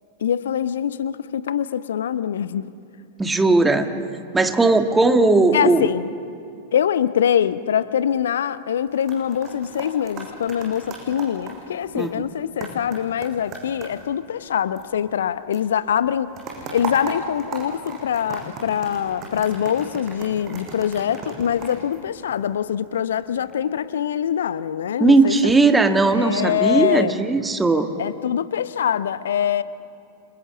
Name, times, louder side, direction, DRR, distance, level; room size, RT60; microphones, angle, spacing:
voice 1, 0.2-2.7 5.5-6.1 6.7-16.3 16.7-25.5 25.8-27.1 28.0-29.6, left 9 dB, 65° left, 15 dB, 0.9 m, -24 dB
voice 2, 3.2-3.9 4.3-5.9 12.0-12.3 25.0-27.9, right 3 dB, 10° right, 6 dB, 1.7 m, -17 dB
sound 1, 8.8-15.3 15.5-22.7 23.2-23.5, right 3 dB, 35° right, 7.6 m, -37 dB
29.5 x 27.0 x 7.2 m, 2.6 s
figure-of-eight pair, 90°, 0 cm